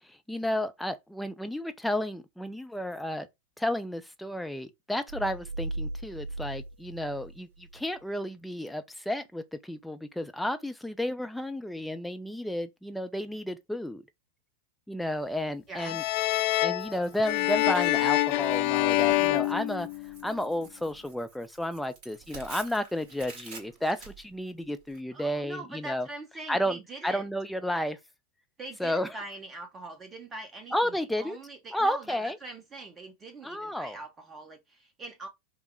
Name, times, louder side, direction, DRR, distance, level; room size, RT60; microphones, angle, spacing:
voice 1, 0.1-3.3 3.6-14.0 14.9-16.0 16.6-19.9 20.2-26.1 26.5-26.8 27.0-28.0 28.8-29.1 30.7-31.4 31.7-32.4 33.4-34.0, left 1 dB, 5° left, 0.6 m, -32 dB
sound 1, 5.1-8.0, right 2 dB, 55° right, 0.5 m, -38 dB
voice 2, 15.7-16.0 25.1-27.3 28.6-35.3, right 2 dB, 20° right, 1.3 m, -43 dB
sound 2, 15.8-20.4, left 18 dB, 45° left, 0.4 m, -26 dB
Tearing, 16.8-25.0, right 4 dB, 40° right, 1.9 m, -50 dB
5.3 x 2.3 x 4.5 m
figure-of-eight pair, 90°, 0 cm